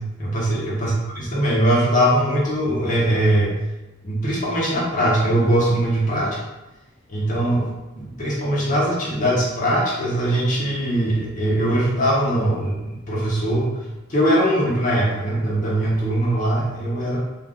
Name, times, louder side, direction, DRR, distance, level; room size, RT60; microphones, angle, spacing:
voice 1, 0.0-3.5 4.0-6.4 7.1-7.7 8.0-13.7 14.1-17.2, right 1 dB, 40° left, -5 dB, 0.7 m, -21 dB
2.3 x 2.3 x 3.6 m, 1.0 s
head